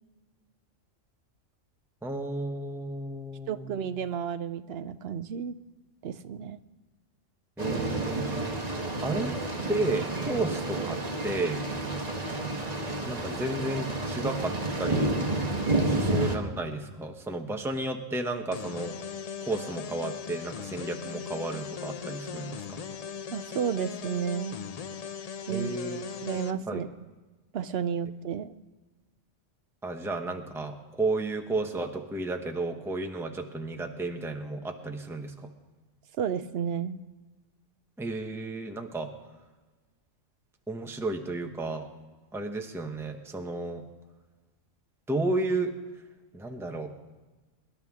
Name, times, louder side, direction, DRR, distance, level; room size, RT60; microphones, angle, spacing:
voice 1, 2.0-3.9 7.6-8.6 9.0-9.3 9.7-11.6 13.0-15.1 15.8-18.9 19.4-22.8 25.5-26.0 26.7-26.8 29.8-35.5 38.0-39.1 40.7-41.9 42.3-43.8 45.1-45.7 46.3-46.9, right 2 dB, ahead, 4 dB, 0.9 m, -33 dB
voice 2, 3.5-5.5 6.0-6.6 23.3-24.6 25.5-25.9 26.2-26.9 27.5-28.5 36.2-37.0, right 7 dB, 65° right, 12 dB, 0.8 m, -32 dB
sound 1, 7.6-16.4, right 2 dB, 35° right, 1.4 m, -30 dB
sound 2, 18.5-26.5, left 7 dB, 75° left, 0.3 m, -39 dB
23.5 x 11.0 x 3.6 m, 1.2 s
omnidirectional pair, 1.3 m